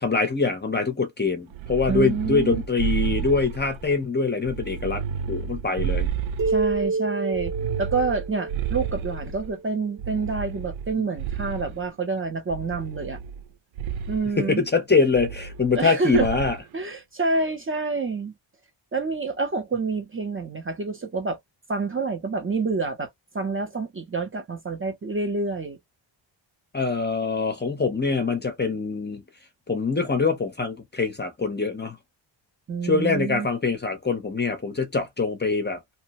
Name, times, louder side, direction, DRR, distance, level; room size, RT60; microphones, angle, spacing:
voice 1, 0.0-6.1 14.4-16.6 26.7-29.2 29.7-32.0 32.8-35.8, left 4 dB, 20° left, 0.6 m, -24 dB
sound 1, 1.5-4.0 4.4-6.9 7.3-9.5 10.0-11.9 12.5-13.5 13.8-14.3 15.1-15.9 16.1-16.6, right 7 dB, 80° right, 0.5 m, -31 dB
voice 2, 1.9-2.6 6.5-7.5 7.8-13.2 14.1-14.6 15.8-16.3 16.7-18.3 18.9-21.4 21.7-23.1 23.3-25.8 32.7-33.5, right 4 dB, 25° right, 0.5 m, -27 dB
sound 2, 6.4-9.9, right 3 dB, 65° right, 1.2 m, -29 dB
2.9 x 2.1 x 2.8 m
wide cardioid pair, 170°, 47 cm